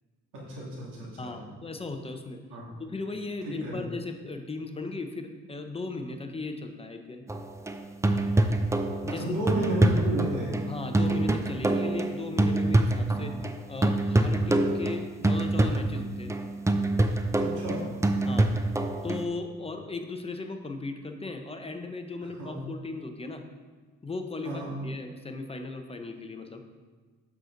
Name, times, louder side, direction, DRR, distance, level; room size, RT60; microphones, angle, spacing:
voice 1, 0.3-1.3 2.5-2.7 3.5-3.8 9.1-10.5 13.1-13.3 17.4-17.9 22.4-22.6 24.4-24.7, equal, 85° right, -4 dB, 2.3 m, -32 dB
voice 2, 1.2-2.4 2.8-7.2 8.6-8.7 9.0-9.2 10.7-13.3 13.7-16.3 18.3-18.5 19.0-23.4 24.0-26.6, left 3 dB, 20° left, 5 dB, 0.8 m, -37 dB
sound 1, 7.3-13.6 13.8-19.2, right 2 dB, 10° right, 0.5 m, -26 dB
7.8 x 6.0 x 3.9 m, 1.4 s
cardioid pair, 90°, 30 cm